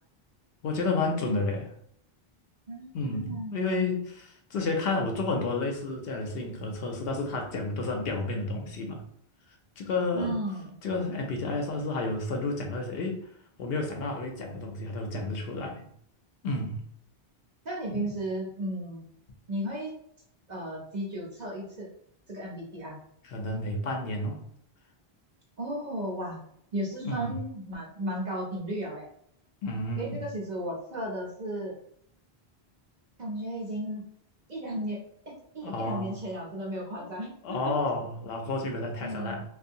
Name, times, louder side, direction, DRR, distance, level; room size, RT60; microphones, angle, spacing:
voice 1, 0.6-1.7 2.9-9.0 9.8-10.4 10.8-13.2 13.6-15.9 16.4-16.8 17.9-18.0 23.2-24.4 27.0-27.3 29.6-30.2 35.6-36.2 37.0-37.1 37.4-39.4, left 2 dB, 70° left, 2 dB, 0.8 m, -31 dB
voice 2, 2.7-3.8 10.1-10.8 17.6-19.0 19.5-19.9 20.5-21.9 22.3-23.0 25.6-26.4 26.7-29.1 30.0-31.8 33.2-34.0 34.5-37.7 39.0-39.4, right 1 dB, 50° right, -2 dB, 0.7 m, -34 dB
2.6 x 2.3 x 2.6 m, 0.68 s
omnidirectional pair, 1.0 m